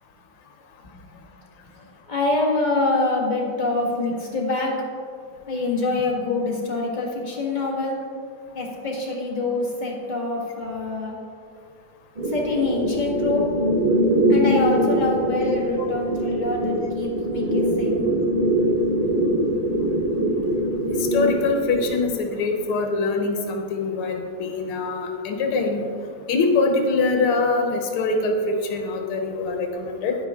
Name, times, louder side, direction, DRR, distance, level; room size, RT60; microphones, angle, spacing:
voice 1, 1.8-4.8 5.5-8.0 8.5-11.2 12.2-13.5 14.3-18.1, left 3 dB, 25° left, -2 dB, 1.6 m, -25 dB
sound 1, 12.2-22.0, right 1 dB, 25° right, 1.0 m, -22 dB
voice 2, 21.0-25.8 26.3-30.2, left 3 dB, 90° left, 3 dB, 1.9 m, -23 dB
10.5 x 9.4 x 3.6 m, 2.4 s
omnidirectional pair, 2.3 m